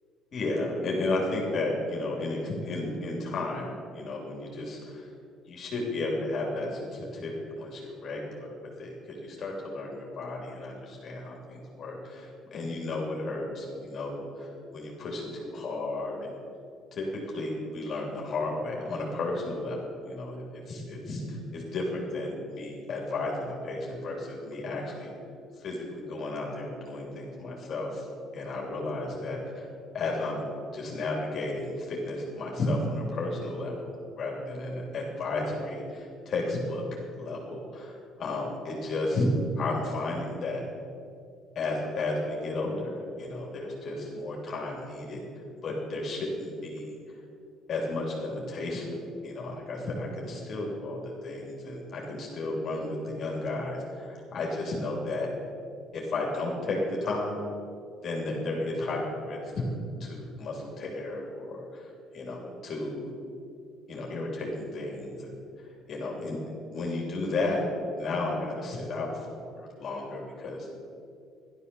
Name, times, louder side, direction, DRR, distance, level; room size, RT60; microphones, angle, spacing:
voice 1, 0.3-5.1 5.5-16.4 16.9-25.1 25.6-28.1 28.3-29.6 29.9-30.5 30.7-36.8 37.2-39.3 39.6-40.6 41.5-45.2 45.6-47.0 47.7-55.3 55.9-57.4 58.0-59.6 60.0-63.1 63.9-65.3 65.9-66.4 66.7-67.6 68.0-70.7, left 2 dB, 40° left, -2 dB, 3.2 m, -33 dB
14.5 x 12.0 x 7.0 m, 2.5 s
cardioid pair, 150°, 0 cm